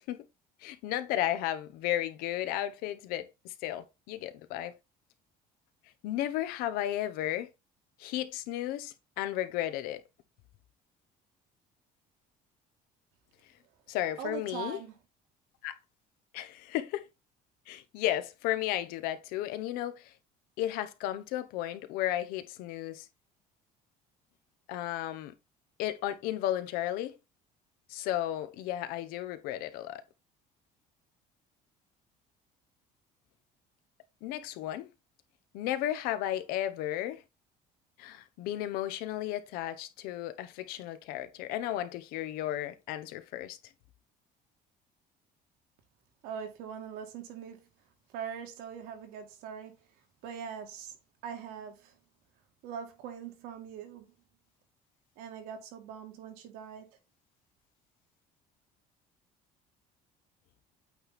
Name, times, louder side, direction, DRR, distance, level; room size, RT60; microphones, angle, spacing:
voice 1, 0.6-4.7 6.0-7.5 8.0-10.0 13.9-14.8 15.6-15.7 16.3-17.0 17.7-20.1 20.6-23.1 24.7-25.3 25.8-27.2 27.9-30.0 34.2-34.9 35.5-37.2 38.0-43.6, left 13 dB, 80° left, 0.9 m, -34 dB
voice 2, 14.2-14.9 46.2-47.7 48.1-49.8 50.2-50.9 51.2-51.9 52.6-54.1 55.2-56.9, right 8 dB, 85° right, 2.1 m, -42 dB
8.6 x 3.5 x 4.2 m
cardioid pair, 175°, 15 cm